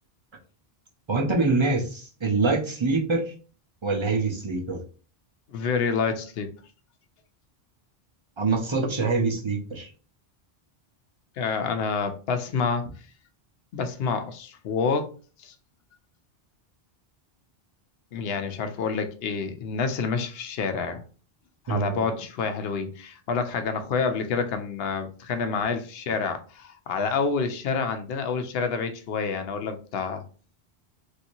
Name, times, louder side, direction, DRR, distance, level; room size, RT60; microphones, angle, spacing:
voice 1, 1.1-3.3 3.8-4.8 8.4-9.9 21.7-22.0, right 3 dB, 30° right, 0.7 m, -25 dB
voice 2, 5.5-6.5 11.4-12.8 13.7-15.1 15.4-15.5 18.1-21.0 21.7-30.2, left 5 dB, 75° left, 0.8 m, -28 dB
3.2 x 2.8 x 2.6 m
omnidirectional pair, 1.0 m